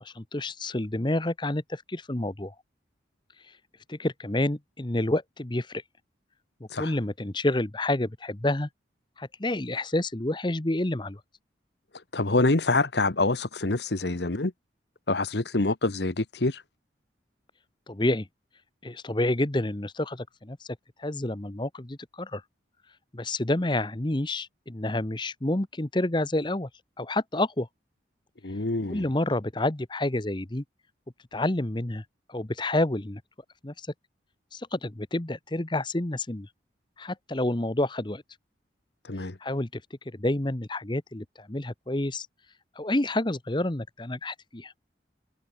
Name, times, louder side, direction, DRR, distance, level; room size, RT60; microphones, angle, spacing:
voice 1, 0.0-2.5 3.9-5.8 6.8-8.7 9.2-11.2 17.9-18.3 18.8-22.4 23.1-26.7 27.0-27.7 28.9-30.6 31.3-32.0 32.3-33.2 33.6-33.9 34.5-36.5 37.0-38.2 39.4-39.8 40.1-42.3 42.8-44.7, left 1 dB, 25° left, 1.0 m, -29 dB
voice 2, 12.1-14.5 15.1-16.6 28.4-29.0 39.1-39.3, left 2 dB, 65° left, 1.2 m, -26 dB
head